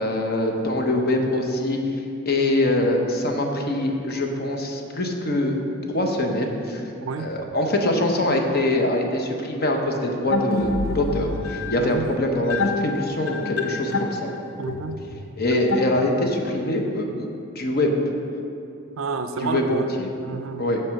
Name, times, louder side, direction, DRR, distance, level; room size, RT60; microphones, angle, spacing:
voice 1, 0.0-5.6 5.9-6.8 7.2-14.3 15.4-17.3 17.5-17.9 19.4-20.1 20.6-20.8, left 1 dB, 50° left, 2 dB, 0.9 m, -24 dB
sound 1, 10.3-16.5, left 3 dB, 70° left, 0.6 m, -28 dB
voice 2, 11.8-12.1 14.6-15.0 15.5-15.6 19.0-19.9 20.2-20.8, right 4 dB, 70° right, 9 dB, 0.4 m, -30 dB
7.6 x 4.7 x 6.3 m, 2.7 s
head